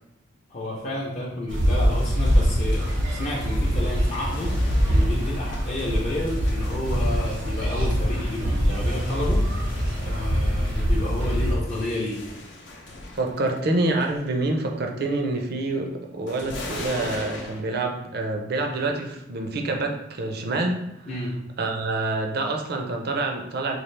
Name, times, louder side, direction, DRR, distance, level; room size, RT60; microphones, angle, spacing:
voice 1, 0.5-2.8 3.1-4.5 4.9-9.4 10.0-12.2 21.0-21.3, left 1 dB, 40° left, -6 dB, 0.6 m, -31 dB
sound 1, 1.5-11.6, equal, 80° right, 0.9 m, -24 dB
sound 2, 2.0-13.6 13.8-14.3 16.3-17.6, left 1 dB, 75° left, 0.7 m, -40 dB
voice 2, 13.1-20.8 21.6-23.8, right 2 dB, 55° right, 3 dB, 0.5 m, -27 dB
4.3 x 2.4 x 3.2 m, 0.83 s
head